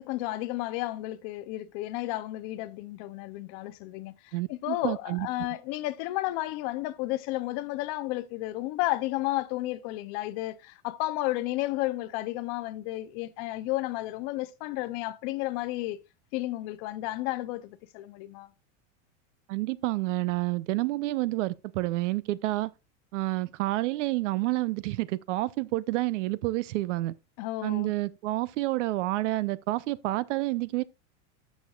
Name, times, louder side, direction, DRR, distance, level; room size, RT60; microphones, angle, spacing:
voice 1, 0.0-16.0 16.3-18.5 27.4-27.9, left 17 dB, 30° left, 0.4 m, -32 dB
voice 2, 4.3-5.3 19.5-22.7 23.1-27.1 27.6-30.8, right 18 dB, 70° right, 0.6 m, -29 dB
13.0 x 6.4 x 2.3 m
supercardioid pair, 175°, 37 cm